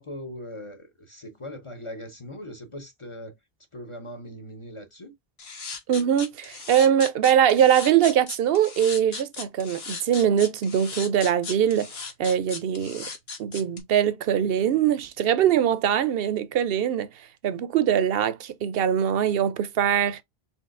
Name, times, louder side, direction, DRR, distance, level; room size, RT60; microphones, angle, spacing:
voice 1, 0.0-3.3 3.7-5.1, left 1 dB, 35° left, 0.7 m, -40 dB
sound 1, 5.4-13.8, left 5 dB, 80° left, 1.3 m, -37 dB
voice 2, 5.9-11.9 12.2-13.1 13.4-17.1 17.4-20.2, right 9 dB, 70° right, 0.7 m, -22 dB
4.5 x 3.9 x 2.4 m
omnidirectional pair, 1.1 m